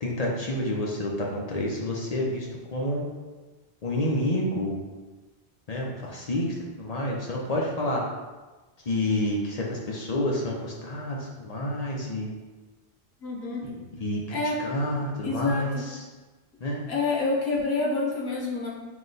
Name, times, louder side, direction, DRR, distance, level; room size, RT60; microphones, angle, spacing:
voice 1, 0.0-3.0 3.8-4.8 5.7-8.0 8.9-12.3 13.6-13.7 14.0-16.0 16.6-16.8, left 1 dB, 45° left, -2 dB, 0.6 m, -29 dB
voice 2, 13.2-13.6 14.3-14.6 15.0-15.8 16.9-18.7, left 3 dB, 85° left, -3 dB, 1.1 m, -28 dB
4.8 x 2.2 x 3.9 m, 1.3 s
omnidirectional pair, 1.0 m